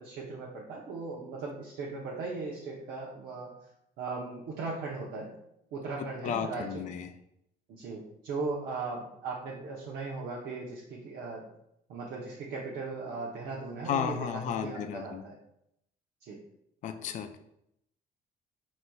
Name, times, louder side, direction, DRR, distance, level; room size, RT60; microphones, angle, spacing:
voice 1, 0.0-3.5 4.0-5.3 5.7-6.8 7.7-11.5 11.9-15.4 16.2-16.4, right 3 dB, 70° right, -4 dB, 0.8 m, -38 dB
voice 2, 6.0-7.1 13.9-15.3 16.8-17.4, left 8 dB, 45° left, 7 dB, 0.4 m, -34 dB
4.7 x 4.1 x 2.3 m, 0.77 s
cardioid pair, 110°, 17 cm